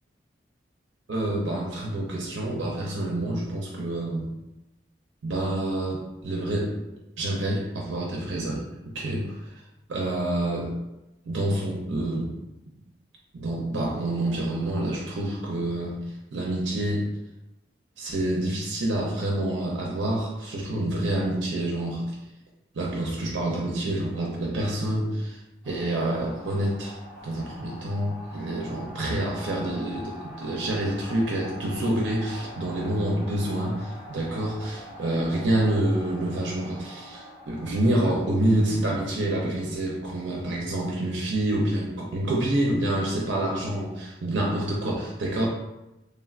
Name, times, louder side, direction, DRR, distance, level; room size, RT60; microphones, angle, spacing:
voice 1, 1.1-4.3 5.2-6.8 7.2-9.5 9.9-10.7 11.3-12.4 13.3-16.0 16.3-17.1 18.0-22.2 22.7-25.4 25.6-27.0 27.2-45.5, right 1 dB, 85° right, -2 dB, 0.5 m, -27 dB
sound 1, 25.6-41.5, left 1 dB, 30° left, 1.5 m, -44 dB
3.3 x 2.2 x 2.3 m, 0.94 s
head